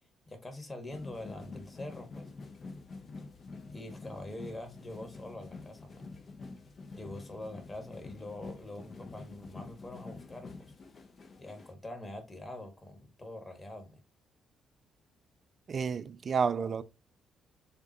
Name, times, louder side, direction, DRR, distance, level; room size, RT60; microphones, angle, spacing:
voice 1, 0.3-2.3 3.7-6.1 6.9-10.7 11.4-14.0, left 1 dB, 20° left, 1.6 m, -44 dB
sound 1, 0.9-11.7, left 3 dB, 40° left, 0.8 m, -47 dB
voice 2, 15.7-16.8, right 6 dB, 45° right, 0.5 m, -30 dB
6.8 x 2.5 x 2.8 m
cardioid pair, 90°, 0 cm